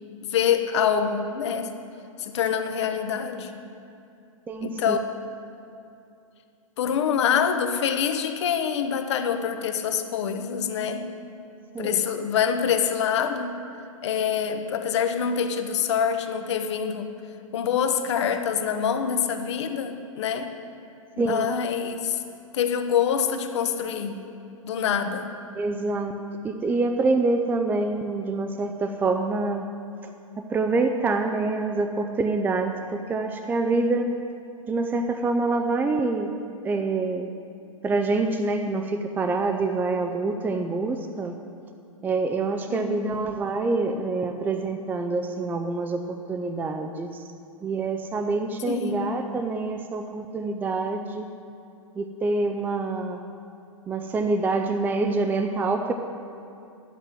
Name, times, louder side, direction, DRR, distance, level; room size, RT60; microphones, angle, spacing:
voice 1, 0.2-1.7 2.2-3.6 4.6-5.0 6.8-11.0 11.8-13.5 14.0-17.1 17.5-20.5 21.2-22.2 22.5-24.2 24.6-25.3 42.7-43.2 48.7-49.1, left 7 dB, 55° left, 7 dB, 1.1 m, -25 dB
voice 2, 4.5-5.0 11.7-12.0 21.2-21.5 25.5-26.2 26.4-29.6 30.4-34.1 34.7-36.3 36.6-37.3 37.8-41.3 42.0-47.3 47.6-51.3 52.0-53.2 53.9-55.9, right 3 dB, 10° right, 5 dB, 0.5 m, -26 dB
10.5 x 8.2 x 7.6 m, 2.7 s
figure-of-eight pair, 110°, 18 cm